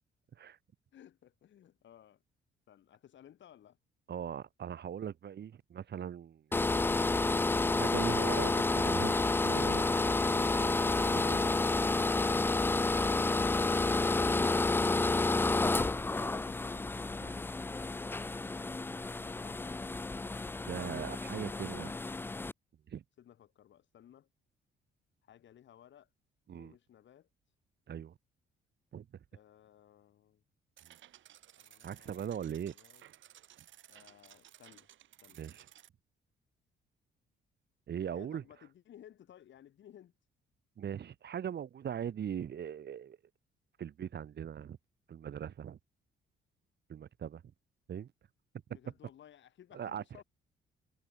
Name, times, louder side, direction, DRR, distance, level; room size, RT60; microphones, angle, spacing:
voice 1, 0.9-2.2 2.7-3.8 20.8-21.0 21.4-22.0 23.2-24.3 25.2-26.1 26.5-27.3 29.3-30.4 31.6-33.0 33.9-34.9 35.2-35.4 38.0-40.2 48.7-50.2, left 10 dB, 70° left, 6.0 m, -58 dB
voice 2, 4.1-6.8 7.8-9.9 10.3-11.4 17.2-17.4 20.7-21.9 22.9-23.0 26.5-26.7 27.9-28.1 28.9-29.1 31.8-32.7 35.4-35.7 37.9-38.4 40.8-43.2 43.8-44.8 45.1-45.8 46.9-47.4 47.9-48.1 49.7-50.0, right 9 dB, 60° right, 3.5 m, -40 dB
sound 1, 6.5-22.5, left 3 dB, 10° left, 0.4 m, -30 dB
sound 2, 30.8-35.9, right 12 dB, 75° right, 4.8 m, -58 dB
cardioid pair, 90°, 20 cm